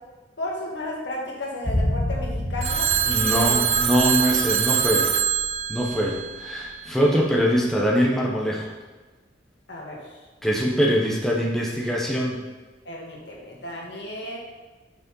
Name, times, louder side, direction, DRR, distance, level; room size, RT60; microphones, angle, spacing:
voice 1, 0.4-3.6 9.7-10.2 12.9-14.4, left 1 dB, 80° left, -3 dB, 1.8 m, -33 dB
sound 1, 1.6-5.9 6.1-6.2, left 1 dB, 25° left, 1.1 m, -29 dB
Telephone, 2.6-6.8, right 8 dB, 35° right, 0.4 m, -24 dB
voice 2, 3.1-5.1 5.7-8.7 10.4-12.4, equal, ahead, -3 dB, 0.9 m, -23 dB
6.7 x 4.9 x 5.4 m, 1.2 s
head